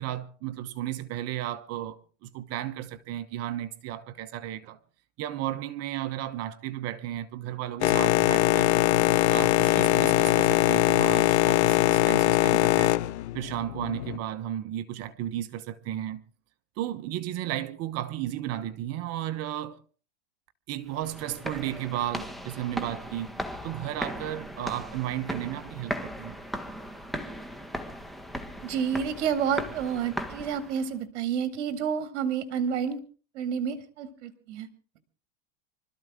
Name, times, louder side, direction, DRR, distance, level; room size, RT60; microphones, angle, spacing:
voice 1, 0.0-4.8 5.2-9.0 9.3-12.9 13.3-16.2 16.8-19.8 20.7-26.4, right 12 dB, 45° right, 1.1 m, -34 dB
Boat Water vehicle, 7.8-14.2, left 17 dB, 75° left, 0.9 m, -22 dB
sound 1, 20.9-30.9, equal, ahead, 1.6 m, -38 dB
voice 2, 28.6-33.0 33.3-34.7, right 7 dB, 70° right, 2.1 m, -29 dB
25.5 x 13.5 x 3.7 m
supercardioid pair, 120°, 35 cm